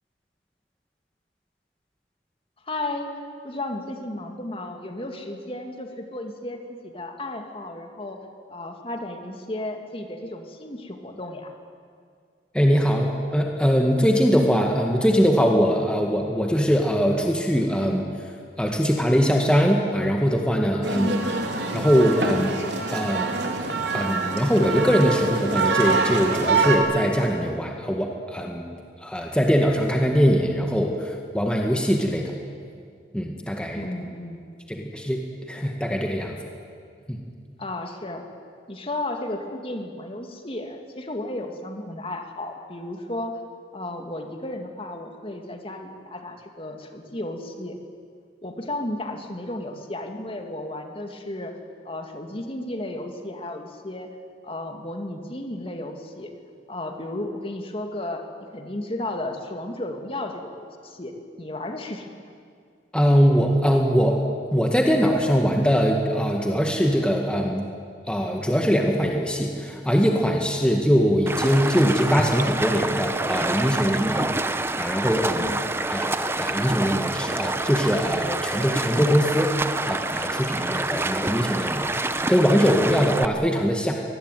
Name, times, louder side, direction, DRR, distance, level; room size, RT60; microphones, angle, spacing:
voice 1, 2.6-3.1 3.4-8.2 8.5-11.5 20.9-21.3 33.8-34.5 37.6-38.2 38.7-43.4 43.7-47.8 48.4-51.5 51.8-54.1 54.4-56.3 56.7-58.2 58.5-61.1 61.4-62.1 75.4-75.6, left 1 dB, 30° left, 4 dB, 2.3 m, -33 dB
voice 2, 12.5-18.3 18.6-21.1 21.7-22.6 22.9-23.3 23.9-28.7 29.0-32.3 33.1-33.8 34.7-36.4 37.1-37.2 62.9-64.1 64.5-67.7 68.1-74.4 74.8-75.5 75.9-76.1 76.4-83.9, equal, 5° left, 1 dB, 1.9 m, -22 dB
sound 1, 20.8-26.8, right 4 dB, 85° right, 3.4 m, -25 dB
Stream, 71.3-83.3, right 2 dB, 15° right, 0.8 m, -27 dB
24.5 x 20.0 x 9.3 m, 2.2 s
head